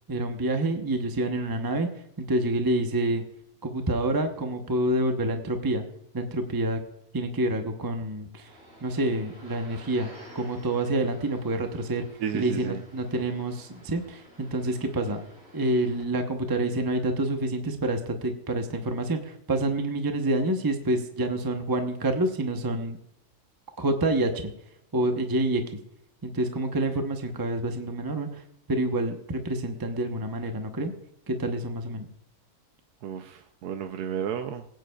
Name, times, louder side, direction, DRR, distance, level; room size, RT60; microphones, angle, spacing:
voice 1, 0.1-1.9 2.3-3.2 3.6-5.8 6.1-6.8 7.1-8.5 8.8-10.1 10.3-12.1 12.3-15.2 15.5-23.0 23.8-24.5 24.9-25.8 26.2-28.4 28.7-30.9 31.3-32.1, right 1 dB, 20° right, 5 dB, 0.6 m, -27 dB
sound 1, 8.4-16.0, equal, 40° right, 5.6 m, -51 dB
voice 2, 12.2-12.8 33.0-34.7, right 8 dB, 85° right, 7 dB, 1.2 m, -32 dB
20.5 x 9.2 x 2.3 m, 0.80 s
omnidirectional pair, 1.6 m